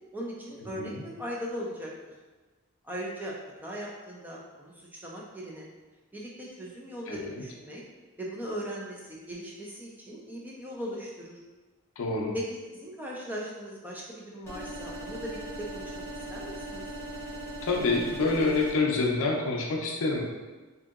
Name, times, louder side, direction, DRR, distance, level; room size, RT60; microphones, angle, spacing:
voice 1, 0.1-1.9 2.8-3.3 3.6-5.7 6.1-7.8 8.2-11.4 12.3-12.4 12.7-15.5 15.7-15.9 16.3-16.8, equal, 10° right, -4 dB, 0.4 m, -38 dB
voice 2, 7.1-7.4 12.0-12.3 17.6-20.2, left 3 dB, 70° left, -1 dB, 0.5 m, -27 dB
sound 1, 14.5-18.7, right 1 dB, 15° left, 0.8 m, -39 dB
2.7 x 2.7 x 2.4 m, 1.3 s
head